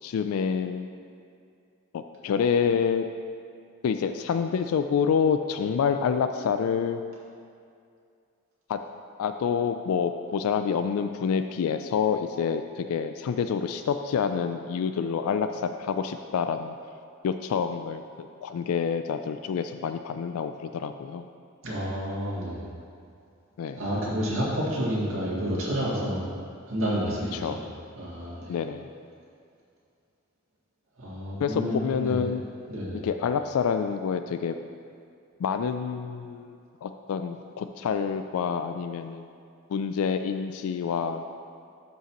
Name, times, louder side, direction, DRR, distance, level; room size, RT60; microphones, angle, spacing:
voice 1, 0.0-0.9 1.9-3.1 3.8-7.0 8.7-8.8 9.2-16.7 17.2-21.2 23.6-23.8 27.3-27.6 28.5-28.9 31.4-32.4 33.0-34.5 35.4-39.2 39.7-41.3, left 6 dB, 85° left, 8 dB, 0.3 m, -27 dB
voice 2, 21.6-22.6 23.8-26.3 26.7-27.6 27.9-28.5 31.0-32.2 32.7-33.0, equal, 70° right, -8 dB, 2.1 m, -30 dB
12.5 x 5.5 x 3.0 m, 2.4 s
head